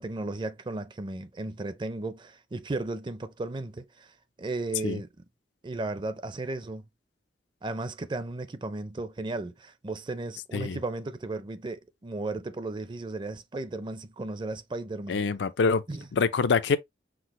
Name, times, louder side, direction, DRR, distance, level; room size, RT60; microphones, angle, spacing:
voice 1, 0.0-4.1 4.4-5.1 5.6-6.8 7.6-15.2 15.9-16.1, right 2 dB, 25° right, 0.5 m, -35 dB
voice 2, 15.1-15.8 16.1-16.8, left 5 dB, 75° left, 0.4 m, -25 dB
6.0 x 2.0 x 3.0 m
head